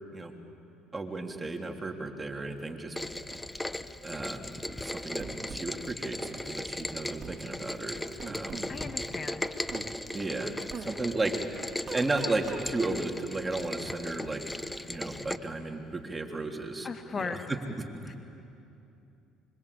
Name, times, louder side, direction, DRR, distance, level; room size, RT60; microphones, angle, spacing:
voice 1, 0.9-3.0 4.0-4.4 4.8-8.0 8.3-8.6 10.1-11.5 11.9-14.5 14.9-16.9 17.1-17.9, right 2 dB, 20° right, 3 dB, 3.3 m, -34 dB
Rain, 2.9-15.4, left 1 dB, 10° left, 1.1 m, -37 dB
sound 1, 5.2-5.7 7.2-7.4 8.2-8.7 9.7-9.9 10.7-10.9 11.9-12.7, right 5 dB, 40° right, 2.9 m, -40 dB
voice 2, 8.7-9.5 16.8-17.5 18.1-18.2, left 5 dB, 35° left, 7 dB, 1.8 m, -37 dB
25.5 x 24.5 x 8.5 m, 2.8 s
hypercardioid pair, 70°, 0 cm